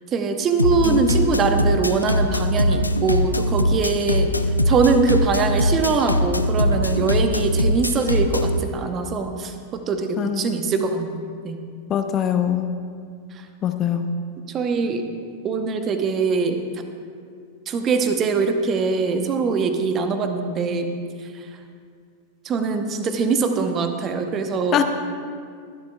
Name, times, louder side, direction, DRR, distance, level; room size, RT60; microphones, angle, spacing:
voice 1, 0.1-4.3 4.7-11.6 14.5-15.0 15.4-16.6 17.7-21.0 22.4-24.8, right 4 dB, 30° right, 7 dB, 1.0 m, -22 dB
sound 1, 0.6-8.6, equal, 85° left, 0.4 m, -21 dB
voice 2, 11.9-12.7 13.6-14.0 24.7-24.8, left 9 dB, 30° left, 8 dB, 0.7 m, -22 dB
22.5 x 11.5 x 2.4 m, 2.2 s
figure-of-eight pair, 90°, 0 cm